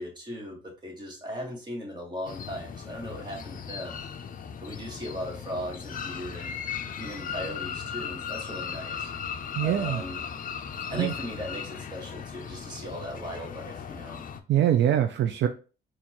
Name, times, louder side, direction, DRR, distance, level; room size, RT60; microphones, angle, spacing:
voice 1, 0.0-4.1 4.6-6.5 7.0-9.1 9.6-10.2 10.9-14.2, equal, 20° right, -1 dB, 1.6 m, -38 dB
sound 1, 2.2-14.4, left 7 dB, 45° left, 0.5 m, -37 dB
voice 2, 9.6-10.0 10.9-11.1 14.5-15.5, right 11 dB, 65° right, 7 dB, 0.4 m, -23 dB
4.3 x 2.4 x 2.9 m, 0.34 s
cardioid pair, 90°, 20 cm